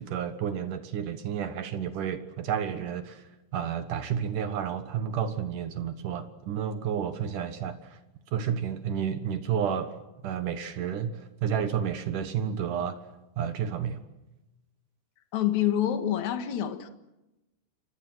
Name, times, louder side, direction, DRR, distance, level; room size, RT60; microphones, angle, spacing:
voice 1, 0.0-3.2 3.5-8.0 8.3-9.9 10.2-13.0 13.4-14.0, right 8 dB, 75° right, 9 dB, 1.9 m, -31 dB
voice 2, 15.3-16.9, left 11 dB, 60° left, 8 dB, 2.1 m, -27 dB
28.5 x 25.5 x 6.1 m, 0.97 s
omnidirectional pair, 5.8 m